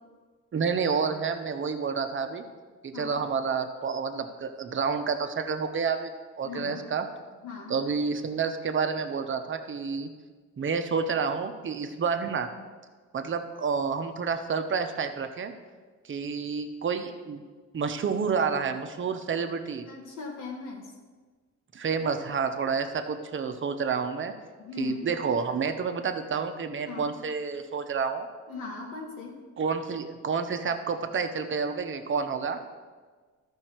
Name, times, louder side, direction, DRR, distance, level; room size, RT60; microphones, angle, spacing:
voice 1, 0.5-2.4 2.8-6.1 6.4-7.1 7.7-10.1 10.6-12.5 13.1-15.5 16.0-17.4 17.7-19.9 21.7-24.3 24.8-28.3 29.6-32.6, right 5 dB, 40° right, 7 dB, 0.9 m, -29 dB
voice 2, 6.4-6.9 7.4-7.8 19.8-20.9 24.6-25.1 26.9-27.1 28.5-29.4, left 4 dB, 85° left, -3 dB, 1.8 m, -38 dB
13.0 x 5.5 x 4.6 m, 1.4 s
cardioid pair, 90°, 30 cm